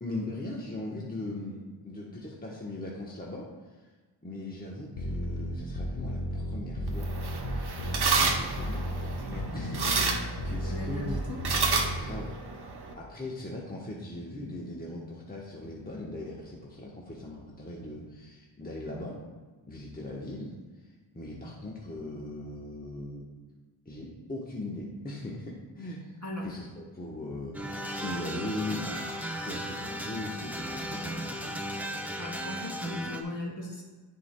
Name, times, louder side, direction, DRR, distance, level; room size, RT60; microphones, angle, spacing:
voice 1, 0.0-3.5 4.2-7.1 7.8-11.2 11.9-12.4 12.9-19.2 19.7-20.5 21.1-23.3 23.9-26.2 26.4-31.4, left 2 dB, 20° left, -4 dB, 1.1 m, -39 dB
sound 1, 5.0-12.0, equal, 75° left, 1.3 m, -33 dB
sound 2, 6.9-12.9, right 4 dB, 55° right, 1.0 m, -31 dB
voice 2, 10.4-11.4 26.2-26.5 32.2-33.8, left 1 dB, 40° left, -2 dB, 2.1 m, -38 dB
sound 3, 27.5-33.2, equal, 5° right, 0.8 m, -36 dB
13.5 x 4.7 x 2.2 m, 1.3 s
wide cardioid pair, 70°, 46 cm